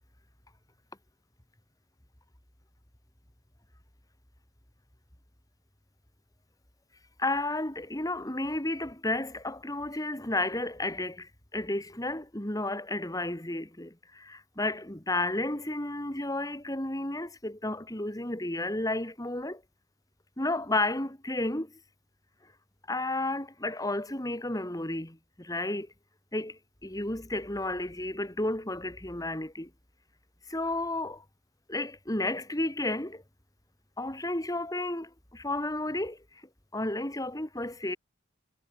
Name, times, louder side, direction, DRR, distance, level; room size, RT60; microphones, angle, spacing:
voice 1, 7.2-19.6 20.4-21.8 22.9-25.9 26.3-29.7 30.5-31.2 31.7-33.2 34.0-36.2 36.7-38.0, left 2 dB, 20° left, 2.5 m, -32 dB
head